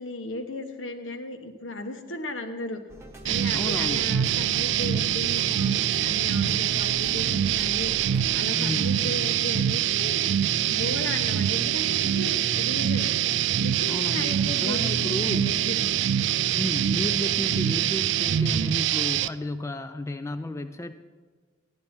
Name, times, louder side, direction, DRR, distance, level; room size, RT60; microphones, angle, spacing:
voice 1, 0.0-2.8 3.2-7.9 8.3-10.2 10.7-13.1 13.6-16.0, left 1 dB, 85° left, 5 dB, 1.2 m, -35 dB
sound 1, 2.9-8.4, equal, 15° right, 1.0 m, -44 dB
sound 2, 3.2-19.3, right 10 dB, 70° right, 0.3 m, -24 dB
voice 2, 3.5-4.0 8.5-9.0 13.9-15.5 16.5-20.9, left 1 dB, 15° left, 9 dB, 0.3 m, -33 dB
14.0 x 11.0 x 4.3 m, 1.4 s
head